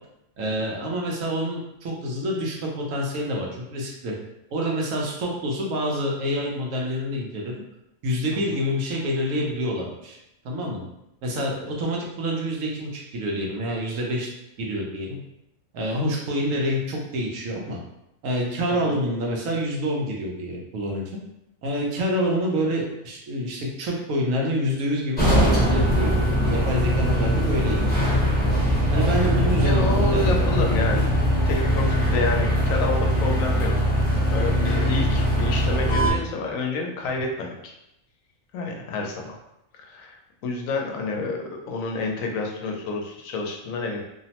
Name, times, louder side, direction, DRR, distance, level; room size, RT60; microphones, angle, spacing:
voice 1, 0.4-4.1 4.5-7.5 8.0-10.2 10.4-10.8 11.2-14.3 14.6-15.2 15.7-17.8 18.2-21.1 21.6-27.8 28.2-28.5 28.9-30.4, equal, 80° right, -1 dB, 1.1 m, -27 dB
sound 1, 25.2-36.1, equal, 10° left, 0.7 m, -21 dB
voice 2, 29.6-31.1 31.4-33.7 34.3-37.7 38.5-39.4 39.8-40.2 40.4-44.0, left 3 dB, 90° left, 1 dB, 1.0 m, -29 dB
2.9 x 2.0 x 2.8 m, 0.84 s
omnidirectional pair, 1.4 m